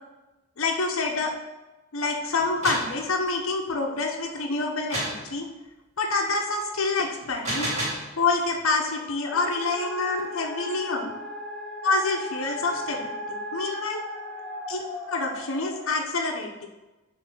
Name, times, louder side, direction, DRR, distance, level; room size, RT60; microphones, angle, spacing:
voice 1, 0.6-1.3 1.9-5.5 6.0-7.7 8.2-11.1 11.8-14.0 14.7-16.7, left 3 dB, 70° left, 1 dB, 0.8 m, -27 dB
sound 1, 2.4-2.9 4.9-5.2 7.2-8.1, right 1 dB, 35° right, 2.4 m, -29 dB
sound 2, 9.3-15.9, equal, 5° left, 1.3 m, -36 dB
9.0 x 3.3 x 6.0 m, 1.1 s
head